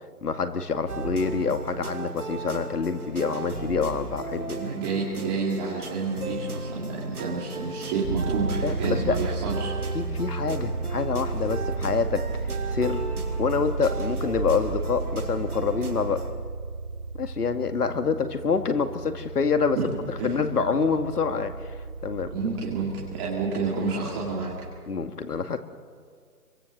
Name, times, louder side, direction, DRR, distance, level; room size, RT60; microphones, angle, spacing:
voice 1, 0.2-4.6 8.6-9.2 9.9-13.0 13.4-16.3 17.2-19.8 20.2-21.8 22.0-22.4 24.9-25.6, left 5 dB, 75° left, 8 dB, 2.2 m, -26 dB
sound 1, 0.9-16.3, right 3 dB, 70° right, 4.7 m, -36 dB
voice 2, 4.6-9.9 19.8-19.9 20.2-20.3 22.3-24.5, right 4 dB, 15° right, -5 dB, 2.6 m, -29 dB
sound 2, 8.0-24.8, right 4 dB, 40° right, 1.3 m, -33 dB
27.5 x 23.5 x 6.7 m, 2.1 s
hypercardioid pair, 160°, 46 cm